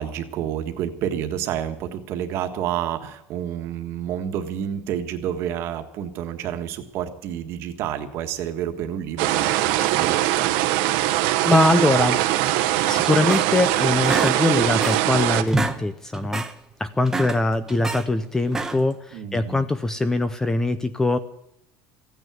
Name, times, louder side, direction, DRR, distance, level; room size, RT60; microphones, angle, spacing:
voice 1, 0.0-10.4 19.1-19.7, right 10 dB, 50° right, 7 dB, 1.6 m, -29 dB
sound 1, 9.2-15.4, right 15 dB, 75° right, 1.2 m, -21 dB
voice 2, 11.5-12.2 12.9-16.4 16.8-21.2, left 2 dB, 10° left, 13 dB, 0.6 m, -22 dB
sound 2, 13.0-13.7 14.0-15.1 15.4-15.8 16.1-16.5 16.9-18.0 18.5-19.0, right 3 dB, 10° right, 0.9 m, -28 dB
15.0 x 9.4 x 9.4 m, 0.78 s
cardioid pair, 165°, 6 cm